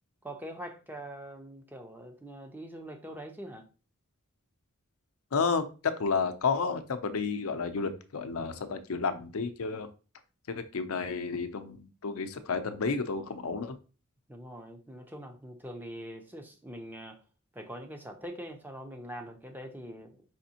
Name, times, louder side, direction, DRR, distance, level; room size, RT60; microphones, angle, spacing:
voice 1, 0.2-3.7 14.3-17.2 17.5-20.1, right 1 dB, 10° right, 0.6 m, -43 dB
voice 2, 5.3-9.9 10.5-13.8, left 5 dB, 80° left, 0.6 m, -31 dB
4.9 x 3.4 x 2.8 m
head